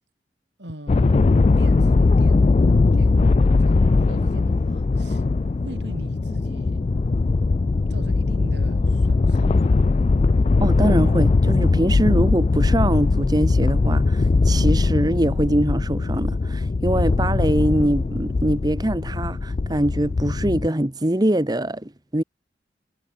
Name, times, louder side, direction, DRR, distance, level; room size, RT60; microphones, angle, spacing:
voice 1, 0.6-1.2 1.5-2.5 2.9-5.2 5.6-6.9 7.9-9.7, equal, 75° right, 7.1 m, -39 dB
sound 1, 0.9-20.7, left 3 dB, 35° left, 0.3 m, -20 dB
voice 2, 10.6-22.2, right 1 dB, 20° right, 1.2 m, -23 dB
head